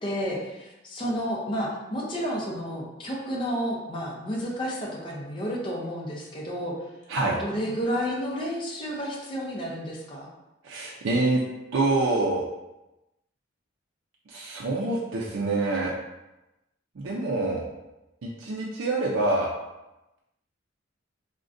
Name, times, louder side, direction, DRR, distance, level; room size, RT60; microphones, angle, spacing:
voice 1, 0.0-6.7 7.4-10.3, equal, 25° left, -4 dB, 0.5 m, -31 dB
voice 2, 10.6-11.4 11.7-12.4 14.3-15.9 17.0-17.6 18.2-19.5, right 2 dB, 85° right, -4 dB, 0.4 m, -26 dB
3.6 x 2.1 x 2.5 m, 0.98 s
head